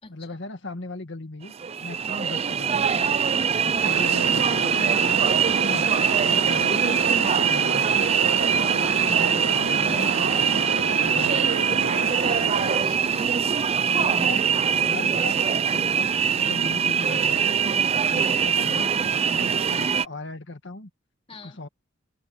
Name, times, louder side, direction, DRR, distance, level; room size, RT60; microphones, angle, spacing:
voice 1, 0.1-3.2 3.6-5.3 5.7-5.9 6.2-8.1 8.5-10.7 11.0-11.7 13.9-16.1 16.4-17.6 17.9-20.9 21.4-21.7, left 2 dB, 65° left, 1.9 m, -38 dB
sound 1, 1.5-20.1, right 7 dB, 30° right, 0.4 m, -23 dB
sound 2, 3.8-12.8, right 3 dB, 80° right, 1.5 m, -30 dB
voice 2, 12.2-13.3 19.8-19.9 21.3-21.6, left 2 dB, 30° left, 2.8 m, -43 dB
open air
head